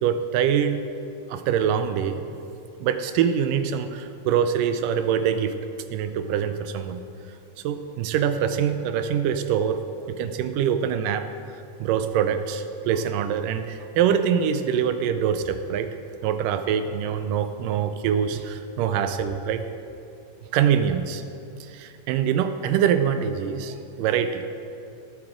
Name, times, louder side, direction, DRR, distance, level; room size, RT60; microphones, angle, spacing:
voice 1, 0.0-0.8 1.3-2.2 2.8-7.0 7.6-9.8 10.1-11.3 11.8-15.9 16.2-19.6 20.5-21.2 21.7-24.4, right 8 dB, 80° right, 9 dB, 2.2 m, -24 dB
17.0 x 9.7 x 3.8 m, 2.7 s
omnidirectional pair, 3.9 m